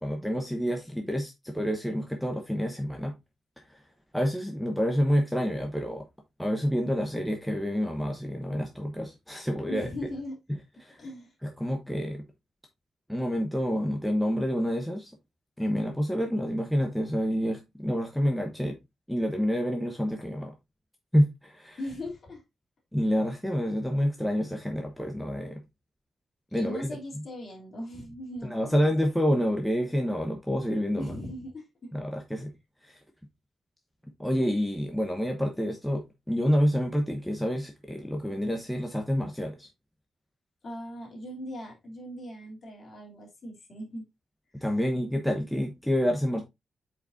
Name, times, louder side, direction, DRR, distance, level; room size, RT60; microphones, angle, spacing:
voice 1, 0.0-3.1 3.7-3.8 4.1-6.0 6.4-9.9 10.8-11.0 11.4-12.2 13.1-15.1 15.6-18.8 19.1-20.5 21.1-21.8 22.9-25.6 26.5-27.0 28.5-31.1 31.9-32.5 32.8-33.0 34.2-39.7 44.6-46.4, equal, ahead, 0.9 m, -28 dB
voice 2, 9.7-10.4 11.0-11.3 21.8-22.4 26.5-28.9 31.0-31.9 40.6-44.1 44.5-44.7, left 1 dB, 40° left, 3.0 m, -39 dB
8.4 x 5.0 x 2.6 m
wide cardioid pair, 170°, 0 cm